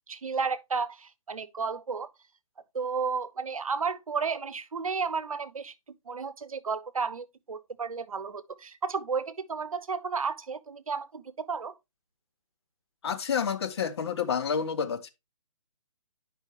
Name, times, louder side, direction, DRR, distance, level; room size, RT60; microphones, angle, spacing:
voice 1, 0.1-2.1 2.7-5.7 6.1-11.7, right 5 dB, 75° right, 0.8 m, -32 dB
voice 2, 13.0-15.1, left 7 dB, 45° left, 0.8 m, -29 dB
9.6 x 5.4 x 2.9 m
figure-of-eight pair, 140°, 18 cm